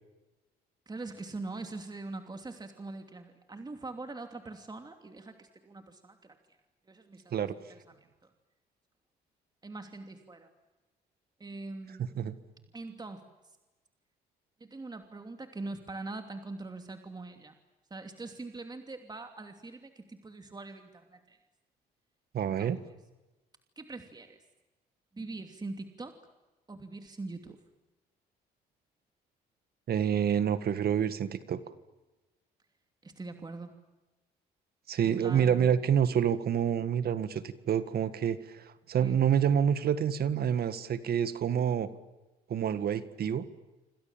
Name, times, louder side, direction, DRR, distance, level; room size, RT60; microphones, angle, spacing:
voice 1, 0.9-6.6 6.9-7.3 7.7-7.8 8.2-8.3 9.6-10.5 11.4-12.2 12.7-13.2 14.6-17.5 17.9-21.4 22.4-22.7 23.8-24.4 25.1-26.2 26.7-27.6 33.0-33.7 35.0-35.8 39.0-39.2, right 3 dB, 25° right, 6 dB, 2.9 m, -43 dB
voice 2, 22.3-22.8 29.9-31.6 34.9-41.9 42.5-43.5, right 8 dB, 60° right, 12 dB, 1.9 m, -28 dB
27.5 x 25.5 x 7.5 m, 1.1 s
supercardioid pair, 75°, 18 cm